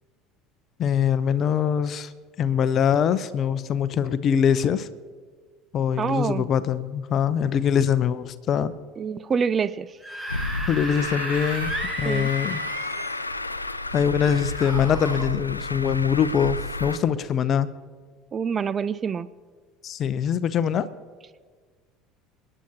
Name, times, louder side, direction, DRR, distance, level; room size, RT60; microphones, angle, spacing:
voice 1, 0.8-2.1 2.4-4.9 5.7-8.7 10.7-11.7 12.0-12.6 13.9-17.7 19.8-20.9, left 8 dB, 45° left, 15 dB, 0.7 m, -23 dB
voice 2, 6.0-6.4 9.0-9.9 12.0-12.3 18.3-19.3, right 6 dB, 30° right, 17 dB, 0.4 m, -26 dB
Screaming / Screech, 9.9-13.2 14.2-15.3, right 1 dB, 10° right, 1.3 m, -34 dB
Truck, 10.3-17.0, left 2 dB, 90° left, 0.4 m, -31 dB
28.5 x 10.0 x 2.9 m, 1.5 s
figure-of-eight pair, 65°, 0 cm